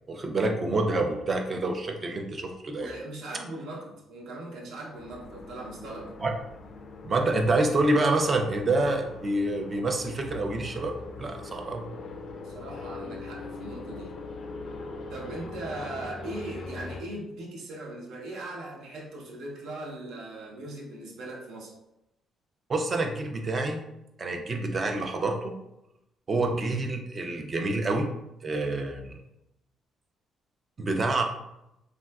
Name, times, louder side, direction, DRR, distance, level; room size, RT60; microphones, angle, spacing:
voice 1, 0.1-2.9 6.2-6.3 7.0-11.9 22.7-23.8 24.2-25.5 26.3-28.1 28.4-29.2 30.8-31.2, right 2 dB, 30° right, 4 dB, 0.4 m, -27 dB
voice 2, 2.7-6.1 12.4-14.1 15.1-21.7, right 2 dB, 80° right, -2 dB, 0.8 m, -39 dB
sound 1, 4.9-17.0, left 3 dB, 50° left, 0.3 m, -42 dB
3.6 x 2.3 x 2.3 m, 0.85 s
cardioid pair, 130°, 0 cm